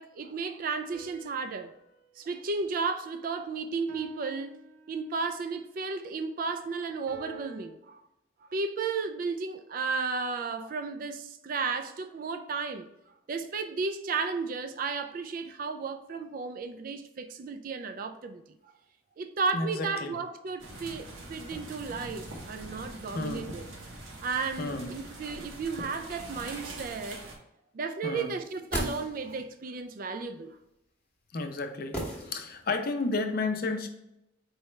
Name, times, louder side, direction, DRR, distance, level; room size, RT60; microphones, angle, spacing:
voice 1, 0.0-1.7 2.2-4.6 4.9-8.0 8.4-12.9 13.3-18.7 19.2-23.7 24.2-27.3 27.7-30.6, right 4 dB, 45° right, 0.3 m, -34 dB
sound 1, 0.9-3.3 3.9-5.4 7.1-7.7, right 3 dB, 65° right, 0.8 m, -52 dB
voice 2, 19.5-20.2 23.1-23.5 24.6-24.9 28.0-28.3 31.3-32.0 32.3-33.9, left 3 dB, 45° left, 0.5 m, -31 dB
sound 2, 20.6-27.4, right 1 dB, 85° right, 1.0 m, -43 dB
sound 3, 28.3-29.5 31.9-32.8 33.1-33.2, equal, 5° left, 0.9 m, -36 dB
4.7 x 3.2 x 3.2 m
head